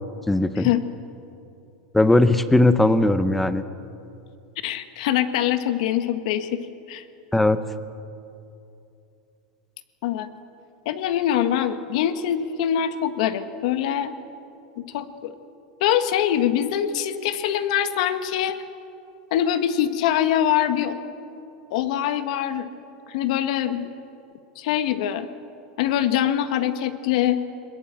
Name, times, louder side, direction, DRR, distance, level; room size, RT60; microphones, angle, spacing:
voice 1, 0.3-0.7 1.9-3.6 7.3-7.6, left 2 dB, 5° left, 12 dB, 0.8 m, -18 dB
voice 2, 4.6-6.6 6.9-7.0 10.0-10.3 10.8-14.1 14.8-15.3 15.8-18.6 19.3-21.0 21.7-22.7 23.1-23.9 24.5-25.3 25.8-27.4, left 10 dB, 65° left, 10 dB, 1.5 m, -23 dB
22.5 x 21.0 x 7.6 m, 2.7 s
supercardioid pair, 150°, 4 cm